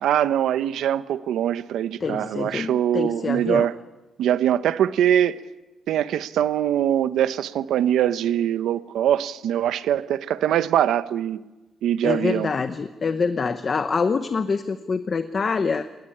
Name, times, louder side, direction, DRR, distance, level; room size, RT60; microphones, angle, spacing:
voice 1, 0.0-3.7 4.2-5.4 5.9-11.4 11.8-12.5, right 10 dB, 90° right, 0.9 m, -22 dB
voice 2, 2.0-3.7 12.0-15.9, left 5 dB, 30° left, 0.8 m, -25 dB
21.0 x 19.0 x 9.9 m
cardioid pair, 165°, 0 cm